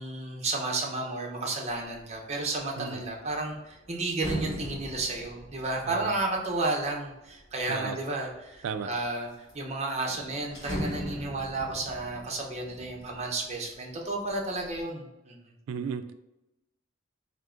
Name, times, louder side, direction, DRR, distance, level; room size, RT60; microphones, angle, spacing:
voice 1, 0.0-9.3 9.5-15.4, right 2 dB, 35° right, 0 dB, 0.7 m, -32 dB
sound 1, 1.9-2.1 2.5-7.9 8.5-9.2 9.5-9.6 9.9-13.8 14.2-14.8, equal, 20° left, 1.4 m, -40 dB
voice 2, 15.7-16.1, right 6 dB, 75° right, 11 dB, 0.3 m, -34 dB
3.6 x 2.8 x 3.6 m, 0.93 s
head